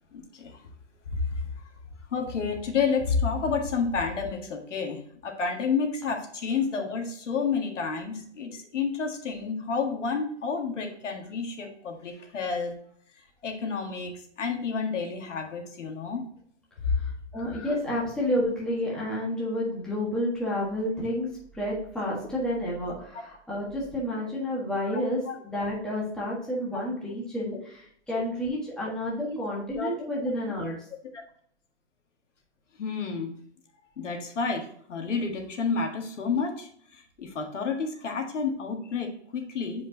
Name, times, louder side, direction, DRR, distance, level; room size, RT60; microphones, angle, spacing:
voice 1, 0.1-0.6 1.1-1.4 2.1-12.8 13.4-16.2 17.4-17.7 24.9-25.4 25.8-25.9 28.1-28.2 29.7-29.9 31.1-31.2 32.8-33.3 34.0-36.7 37.2-39.9, left 5 dB, 85° left, 3 dB, 1.7 m, -30 dB
voice 2, 17.0-21.3 21.5-30.8, left 1 dB, ahead, -6 dB, 1.5 m, -30 dB
7.9 x 5.0 x 2.8 m, 0.63 s
hypercardioid pair, 150°, 35 cm